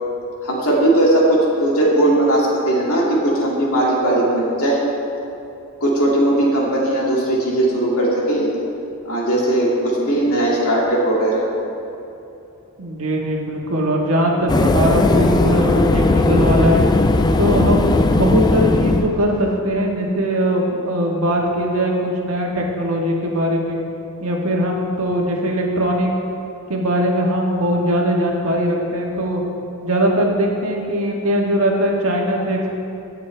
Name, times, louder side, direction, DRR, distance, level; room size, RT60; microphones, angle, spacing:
voice 1, 0.4-4.8 5.8-8.5 9.0-11.4, right 1 dB, 70° left, -4 dB, 2.3 m, -18 dB
voice 2, 12.8-16.8 17.4-23.8 24.2-26.1 26.7-29.4 29.8-32.7, equal, 70° right, -1 dB, 1.5 m, -20 dB
sound 1, 14.5-19.6, left 2 dB, 20° left, 0.3 m, -17 dB
17.0 x 6.7 x 3.3 m, 2.9 s
head